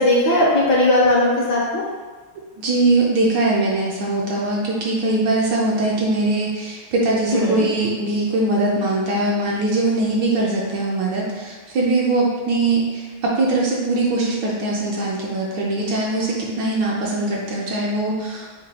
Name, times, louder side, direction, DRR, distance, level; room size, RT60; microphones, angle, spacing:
voice 1, 0.0-1.8 7.3-7.6, left 1 dB, 65° left, -4 dB, 1.2 m, -17 dB
voice 2, 2.6-18.5, right 2 dB, 70° right, -3 dB, 1.2 m, -21 dB
5.2 x 2.3 x 4.1 m, 1.4 s
omnidirectional pair, 2.3 m